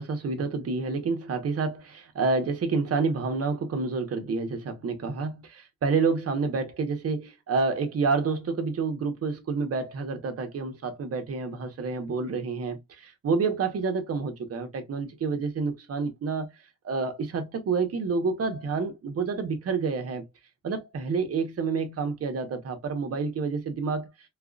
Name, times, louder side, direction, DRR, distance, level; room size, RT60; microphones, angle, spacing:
voice 1, 0.0-16.5 16.8-20.2 20.6-24.1, right 4 dB, 50° right, 1.2 m, -28 dB
4.6 x 2.4 x 2.3 m
cardioid pair, 90°, 30 cm